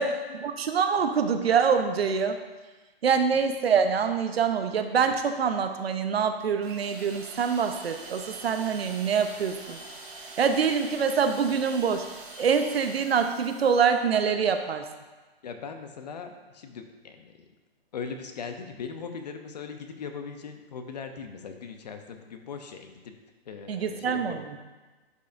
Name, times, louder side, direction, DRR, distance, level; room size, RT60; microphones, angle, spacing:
voice 1, 0.0-2.4 3.0-9.8 10.4-12.1 12.4-14.9 23.7-24.4, right 6 dB, 75° right, 7 dB, 0.8 m, -25 dB
sound 1, 6.6-14.2, right 3 dB, 55° right, 1.7 m, -44 dB
voice 2, 15.4-17.3 17.9-23.1 23.5-24.4, left 5 dB, 40° left, 6 dB, 0.7 m, -39 dB
11.0 x 5.5 x 2.6 m, 1.2 s
hypercardioid pair, 160°, 31 cm